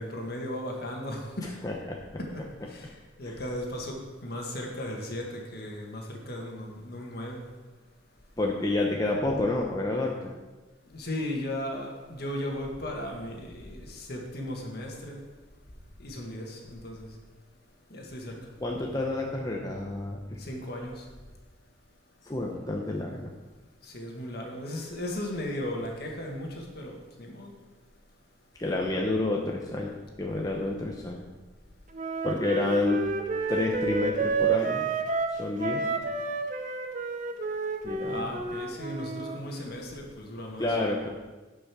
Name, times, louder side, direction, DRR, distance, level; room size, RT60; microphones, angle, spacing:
voice 1, 0.0-1.7 2.2-7.4 10.9-15.2 16.0-17.2 17.9-18.4 20.4-21.1 23.8-27.5 35.8-36.1 38.0-40.8, left 1 dB, 55° left, 0 dB, 1.8 m, -36 dB
voice 2, 1.6-2.0 3.3-3.4 8.4-10.3 18.6-20.4 22.3-23.3 28.6-29.9 30.2-31.2 32.2-33.0 33.5-34.8 35.4-35.8 37.8-38.3 40.6-41.1, left 2 dB, 20° left, -1 dB, 0.7 m, -29 dB
Wind instrument woodwind instrument, 31.9-39.4, right 4 dB, 40° right, 0.7 m, -30 dB
10.0 x 5.5 x 6.1 m, 1.2 s
head